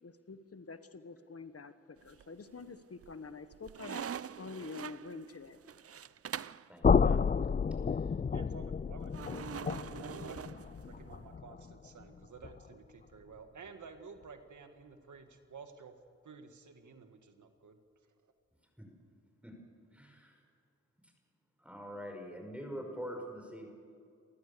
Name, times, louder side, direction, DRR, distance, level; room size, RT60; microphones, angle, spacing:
voice 1, 0.0-4.0 4.4-5.6, left 4 dB, 50° left, 11 dB, 1.5 m, -47 dB
sound 1, 2.0-2.6 3.0-6.7 9.1-11.2, right 8 dB, 50° right, 0.5 m, -44 dB
voice 2, 6.7-7.2 18.8-18.9 19.4-19.5 19.9-20.4 21.6-23.7, equal, 5° right, 2 dB, 5.5 m, -44 dB
sound 2, 6.8-12.7, left 6 dB, 30° left, 0.4 m, -31 dB
voice 3, 8.3-9.7 10.0-10.5 10.9-15.9 16.2-17.8 18.2-18.3, right 5 dB, 75° right, 7 dB, 1.8 m, -52 dB
29.0 x 14.5 x 6.9 m, 2.3 s
cardioid pair, 40°, 30 cm